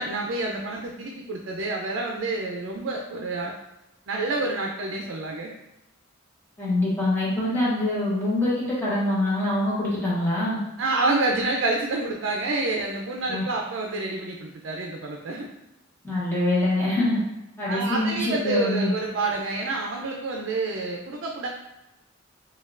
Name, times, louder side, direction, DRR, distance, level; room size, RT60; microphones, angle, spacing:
voice 1, 0.0-3.5 4.1-5.5 10.8-15.5 16.9-17.1 17.7-21.5, right 2 dB, 65° right, 0 dB, 0.4 m, -28 dB
voice 2, 6.6-10.6 13.3-13.4 16.0-17.2 17.6-18.9, left 1 dB, 10° left, -8 dB, 0.9 m, -24 dB
4.3 x 2.2 x 2.4 m, 0.94 s
head